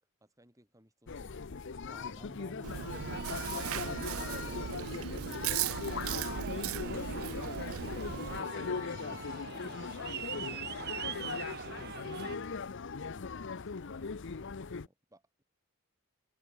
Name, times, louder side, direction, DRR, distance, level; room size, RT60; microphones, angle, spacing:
voice 1, 0.2-1.6 2.1-2.3 13.4-15.4, right 1 dB, 15° right, 6.3 m, -64 dB
sound 1, 1.1-14.9, left 5 dB, 55° left, 0.7 m, -39 dB
voice 2, 1.9-3.0 7.5-9.4, equal, 5° left, 2.6 m, -53 dB
Chewing mastication, 2.6-8.4, right 9 dB, 70° right, 0.5 m, -38 dB
Aircraft, 2.9-12.4, right 6 dB, 50° right, 0.8 m, -43 dB
open air
head